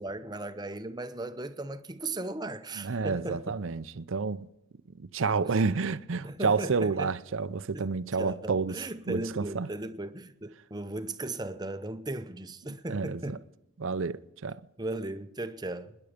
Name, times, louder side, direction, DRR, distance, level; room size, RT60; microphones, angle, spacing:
voice 1, 0.0-3.4 6.2-7.1 7.7-7.9 8.2-13.4 14.8-16.0, right 2 dB, 20° right, 0.7 m, -37 dB
voice 2, 2.8-4.5 4.9-8.8 9.1-9.7 12.9-13.4 13.8-14.6, right 4 dB, 65° right, 0.6 m, -30 dB
26.0 x 11.0 x 5.1 m
head